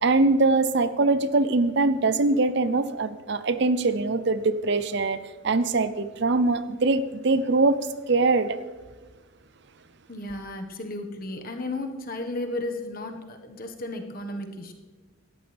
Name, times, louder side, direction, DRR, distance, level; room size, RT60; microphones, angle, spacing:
voice 1, 0.0-5.2 5.4-8.6, right 3 dB, 55° right, 13 dB, 0.6 m, -22 dB
voice 2, 10.1-14.7, left 2 dB, 45° left, 4 dB, 1.4 m, -34 dB
18.0 x 13.0 x 3.4 m, 1.3 s
head